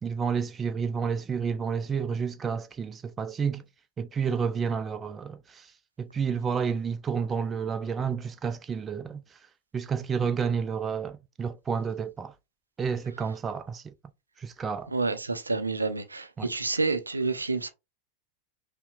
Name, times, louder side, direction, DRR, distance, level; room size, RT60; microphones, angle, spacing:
voice 1, 0.0-3.6 4.0-5.7 6.0-9.2 9.7-12.3 12.8-13.9 14.4-14.9 16.4-16.5, right 6 dB, 20° right, 0.4 m, -30 dB
voice 2, 14.9-17.7, right 3 dB, 80° right, 0.5 m, -29 dB
5.4 x 2.1 x 2.4 m
figure-of-eight pair, 90°, 0 cm